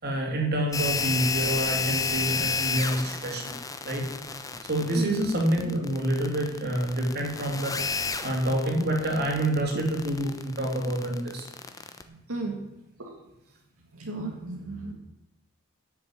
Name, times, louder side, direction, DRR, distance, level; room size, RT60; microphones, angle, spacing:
voice 1, 0.0-3.6 3.8-4.1 4.7-11.5, right 1 dB, 50° right, 1 dB, 3.0 m, -27 dB
sound 1, 0.7-12.0, left 5 dB, 15° left, 0.8 m, -31 dB
voice 2, 4.9-5.3 9.7-9.8 12.1-12.6 13.0-13.1 14.0-14.9, right 3 dB, 80° right, 0 dB, 2.0 m, -33 dB
10.5 x 7.2 x 8.7 m, 0.90 s
head